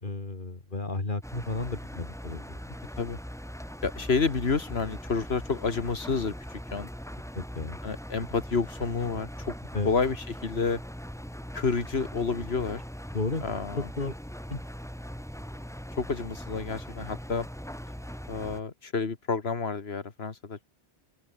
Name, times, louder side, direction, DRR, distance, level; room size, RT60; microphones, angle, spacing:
voice 1, 0.0-2.8 7.3-7.8 9.7-9.9 13.1-13.4 13.8-14.1 14.5-14.6, left 3 dB, 55° left, 2.9 m, -33 dB
Engine, 1.2-18.6, equal, 5° left, 2.2 m, -41 dB
voice 2, 3.8-6.9 7.8-9.5 9.9-10.2 10.4-10.8 11.5-12.8 13.4-13.9 16.0-17.5 18.3-20.6, left 4 dB, 80° left, 2.0 m, -29 dB
open air
omnidirectional pair, 1.0 m